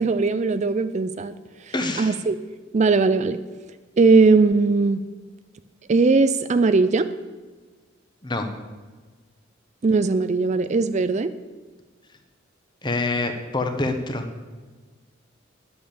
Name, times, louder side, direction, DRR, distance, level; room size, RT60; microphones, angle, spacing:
voice 1, 0.0-1.3 1.6-2.4 2.7-3.4 4.0-5.0 5.9-7.1 9.8-11.3, right 3 dB, 35° right, 12 dB, 0.4 m, -19 dB
voice 2, 1.7-2.2 8.2-8.5 12.8-14.3, left 2 dB, 25° left, 6 dB, 1.2 m, -26 dB
10.5 x 8.6 x 7.0 m, 1.4 s
head